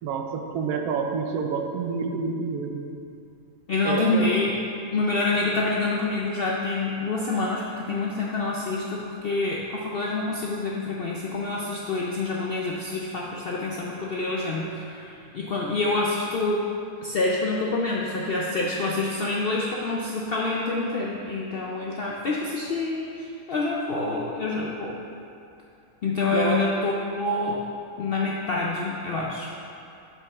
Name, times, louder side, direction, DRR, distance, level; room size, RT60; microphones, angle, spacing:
voice 1, 0.0-2.9 3.8-4.3 26.3-26.7, right 5 dB, 80° right, 4 dB, 1.1 m, -28 dB
voice 2, 3.7-4.6 4.9-16.6 17.0-25.0 26.0-27.6 28.0-29.5, left 3 dB, 70° left, -3 dB, 0.5 m, -27 dB
7.6 x 5.4 x 3.5 m, 2.6 s
omnidirectional pair, 1.6 m